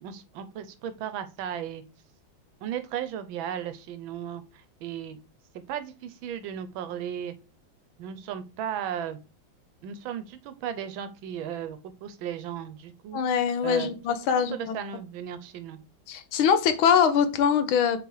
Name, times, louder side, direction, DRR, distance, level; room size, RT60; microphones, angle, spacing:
voice 1, 0.0-1.8 2.6-5.2 5.7-7.3 8.0-9.2 9.8-13.2 13.6-14.0 14.3-15.8, right 9 dB, 80° right, 11 dB, 1.4 m, -35 dB
voice 2, 13.1-14.8 16.1-18.0, left 7 dB, 80° left, 10 dB, 1.6 m, -23 dB
6.8 x 4.3 x 3.1 m, 0.31 s
omnidirectional pair, 2.2 m